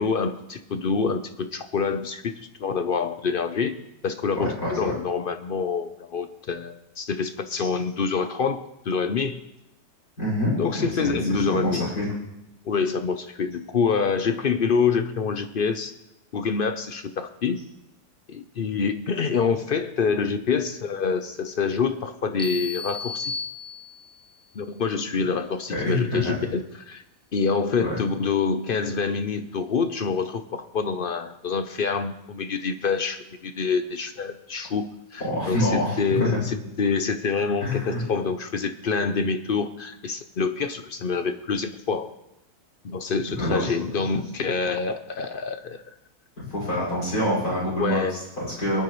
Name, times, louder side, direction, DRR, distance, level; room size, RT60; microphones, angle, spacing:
voice 1, 0.0-2.3 2.6-3.8 4.0-9.4 10.6-11.9 12.6-15.9 16.3-17.6 18.3-23.3 24.5-27.0 27.3-42.1 42.8-45.8 47.8-48.2, left 5 dB, 55° left, 8 dB, 0.6 m, -26 dB
voice 2, 4.3-5.0 7.6-7.7 10.2-12.1 25.7-26.4 27.8-28.0 35.2-36.4 37.6-38.0 43.4-43.8 46.5-48.8, left 1 dB, 70° left, -6 dB, 6.1 m, -26 dB
sound 1, 22.4-24.3, left 4 dB, 5° left, 0.9 m, -34 dB
23.0 x 9.7 x 3.1 m, 0.88 s
omnidirectional pair, 1.6 m